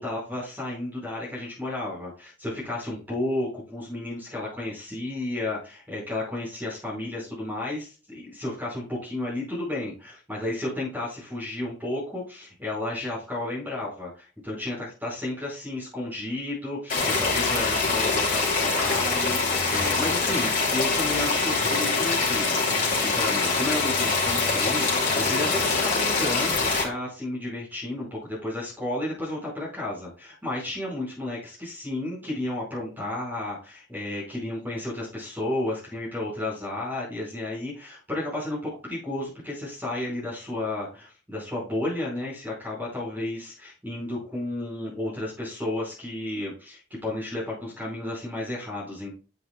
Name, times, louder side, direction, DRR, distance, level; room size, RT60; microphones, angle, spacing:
voice 1, 0.0-49.1, left 1 dB, 10° right, -5 dB, 5.1 m, -32 dB
sound 1, 16.9-26.8, left 3 dB, 40° left, 2.5 m, -24 dB
9.3 x 8.3 x 2.3 m, 0.34 s
head